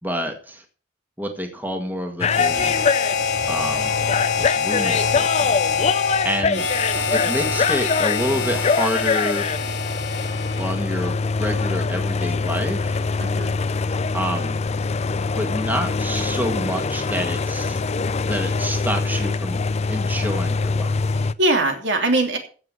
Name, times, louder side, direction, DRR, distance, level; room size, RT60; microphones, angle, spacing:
voice 1, 0.0-0.6 1.2-2.7 3.5-4.0 4.4-5.5 6.2-6.6 7.1-9.5 10.6-13.1 14.1-14.6 15.3-17.8 18.2-19.6 19.9-20.9, equal, 10° right, 4 dB, 1.8 m, -28 dB
sound 1, 2.2-21.3, left 4 dB, 35° left, 0.5 m, -24 dB
Harmonica, 2.3-10.9, left 6 dB, 65° left, 1.6 m, -25 dB
voice 2, 13.2-13.6 21.1-22.4, right 2 dB, 70° right, 3 dB, 3.0 m, -22 dB
16.0 x 6.1 x 6.2 m, 0.39 s
head